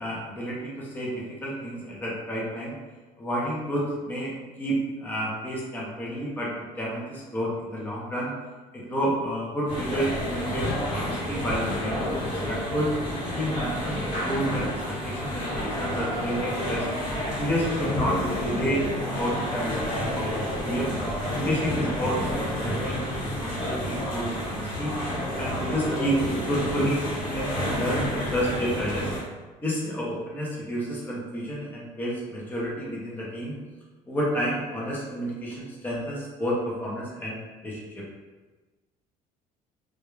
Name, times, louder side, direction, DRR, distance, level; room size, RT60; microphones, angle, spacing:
voice 1, 0.0-2.8 3.2-8.3 8.7-12.9 13.3-14.7 15.0-16.9 17.4-20.9 21.3-24.9 25.4-26.2 26.4-27.0 27.3-29.1 29.6-33.5 34.1-37.4 37.6-38.0, equal, 10° left, -5 dB, 0.5 m, -30 dB
sound 1, 9.7-29.2, equal, 60° left, 1.1 m, -29 dB
2.3 x 2.1 x 3.0 m, 1.2 s
cardioid pair, 150°, 15 cm